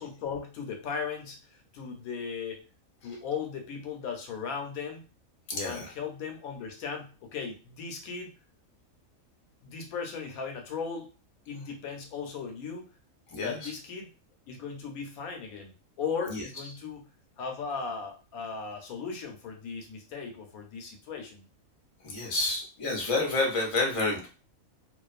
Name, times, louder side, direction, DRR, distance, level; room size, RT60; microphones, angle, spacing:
voice 1, 0.0-2.6 3.0-5.1 5.6-8.3 9.6-11.1 11.5-12.9 13.4-14.1 14.5-17.1 17.4-21.4, left 6 dB, 90° left, 3 dB, 1.1 m, -37 dB
voice 2, 5.5-5.9 13.3-13.7 16.3-16.4 22.0-24.3, left 2 dB, 35° left, -1 dB, 0.6 m, -29 dB
2.5 x 2.3 x 2.4 m, 0.35 s
omnidirectional pair, 1.5 m